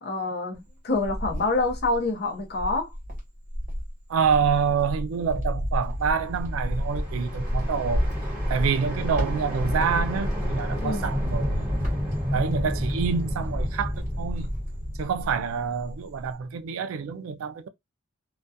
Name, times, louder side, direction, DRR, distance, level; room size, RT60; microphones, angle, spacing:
voice 1, 0.0-2.9 10.8-11.1, left 3 dB, 50° left, 0.6 m, -27 dB
Cricket, 0.5-2.1 2.5-15.5 15.8-16.3, equal, 35° right, 1.0 m, -31 dB
voice 2, 4.1-8.1 8.5-11.7 12.3-14.5 15.0-17.7, right 6 dB, 70° right, 0.3 m, -27 dB
sound 1, 6.0-16.0, equal, 10° right, 1.2 m, -32 dB
2.3 x 2.2 x 2.6 m
head